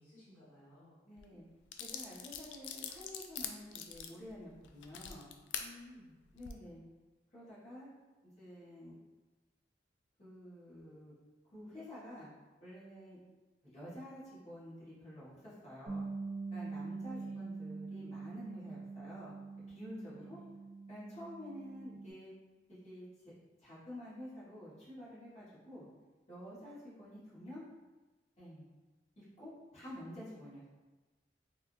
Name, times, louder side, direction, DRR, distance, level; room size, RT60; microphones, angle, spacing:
voice 1, 0.0-1.0 5.6-6.2 17.1-17.4 20.1-20.4, left 2 dB, 10° left, -12 dB, 1.3 m, -57 dB
voice 2, 1.0-1.4 1.8-5.3 6.3-6.8 7.3-7.9 8.4-8.9 10.2-11.1 11.5-12.3 12.6-13.2 13.7-16.1 16.5-19.3 19.7-20.4 20.9-22.3 22.7-23.0 23.6-25.8 26.3-27.6 28.4-28.6 29.2-30.6, equal, 40° left, -12 dB, 1.4 m, -49 dB
sound 1, 1.2-1.3 1.7-5.7 6.3-6.5, left 8 dB, 90° left, 0.3 m, -43 dB
Bass guitar, 15.9-22.1, right 3 dB, 80° right, 0.7 m, -44 dB
3.6 x 2.4 x 2.6 m, 1.2 s
head